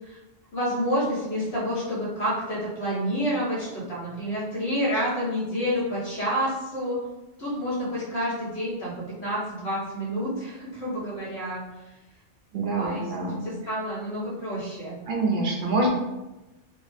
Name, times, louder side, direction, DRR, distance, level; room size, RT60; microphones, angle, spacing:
voice 1, 0.5-7.0 7.4-8.9 9.2-11.6 12.8-13.1 13.4-15.0 15.8-15.9, equal, 60° left, -7 dB, 1.5 m, -29 dB
voice 2, 12.5-13.4 15.1-15.9, right 3 dB, 55° right, -2 dB, 0.7 m, -26 dB
3.1 x 2.0 x 3.2 m, 1.0 s
omnidirectional pair, 1.3 m